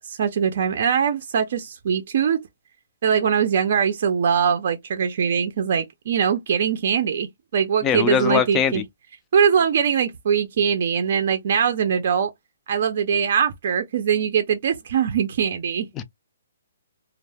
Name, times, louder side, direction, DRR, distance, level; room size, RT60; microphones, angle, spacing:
voice 1, 0.1-2.4 3.0-7.3 7.5-8.8 9.3-12.3 12.7-15.9, right 7 dB, 50° right, 0.4 m, -22 dB
voice 2, 7.8-8.8 16.0-16.1, left 7 dB, 15° left, 0.3 m, -21 dB
2.1 x 2.0 x 3.3 m
hypercardioid pair, 165°, 0 cm